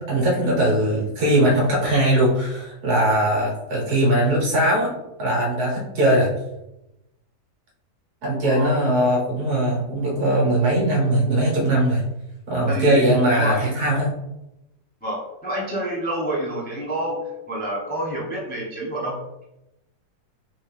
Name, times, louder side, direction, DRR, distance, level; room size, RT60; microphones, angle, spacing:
voice 1, 0.0-6.3 8.2-12.0 12.5-14.1, right 1 dB, 55° right, -3 dB, 1.8 m, -20 dB
voice 2, 8.4-8.8 12.7-13.6 15.0-17.2 17.5-19.4, right 1 dB, 15° left, -4 dB, 0.3 m, -28 dB
4.1 x 3.5 x 3.4 m, 0.91 s
omnidirectional pair, 2.0 m